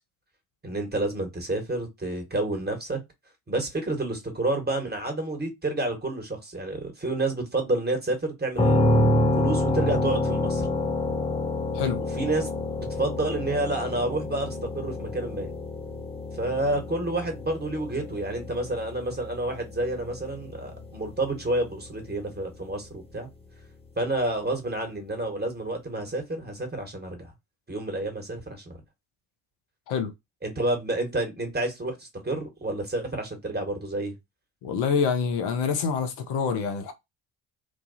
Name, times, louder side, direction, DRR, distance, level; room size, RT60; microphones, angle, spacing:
voice 1, 0.6-3.0 3.5-8.8 9.4-10.7 12.1-12.5 13.0-15.5 16.3-23.3 24.0-27.3 27.7-28.8 30.4-34.1, right 2 dB, 20° right, 1.4 m, -29 dB
sound 1, 8.6-22.3, left 1 dB, 15° left, 0.8 m, -28 dB
voice 2, 34.6-36.9, left 6 dB, 65° left, 0.7 m, -26 dB
3.0 x 2.2 x 2.7 m
hypercardioid pair, 45°, 44 cm